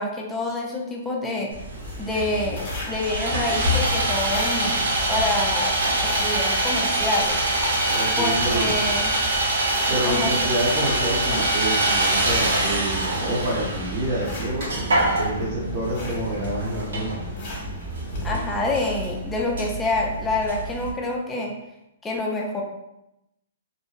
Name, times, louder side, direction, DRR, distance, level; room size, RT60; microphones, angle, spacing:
voice 1, 0.0-1.5 2.0-7.4 8.2-9.1 10.0-10.5 18.2-21.5 22.0-22.6, left 2 dB, 10° left, -1 dB, 0.4 m, -27 dB
Sawing, 1.5-20.9, right 2 dB, 85° right, 0.6 m, -25 dB
sound 1, 1.7-18.9, equal, 40° left, 0.9 m, -36 dB
sound 2, 2.3-19.2 19.9-20.0, left 4 dB, 60° right, 1.3 m, -36 dB
voice 2, 7.9-8.7 9.9-17.1, right 1 dB, 35° right, -10 dB, 0.7 m, -28 dB
2.6 x 2.1 x 2.3 m, 0.87 s
hypercardioid pair, 145°, 0 cm